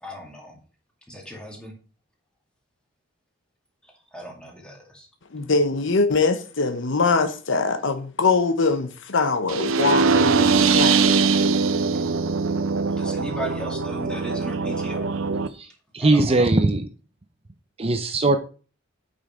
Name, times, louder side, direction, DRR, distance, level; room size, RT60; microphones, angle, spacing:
voice 1, 0.0-0.6 1.1-1.7 4.1-5.1 13.0-15.0 16.0-16.3, equal, 5° left, 2.2 m, -36 dB
voice 2, 5.3-11.2, left 4 dB, 65° left, 0.9 m, -23 dB
sound 1, 9.5-15.5, right 4 dB, 70° right, 0.6 m, -21 dB
voice 3, 15.9-16.9 17.8-18.4, right 2 dB, 30° right, 0.6 m, -19 dB
8.4 x 5.6 x 4.4 m
head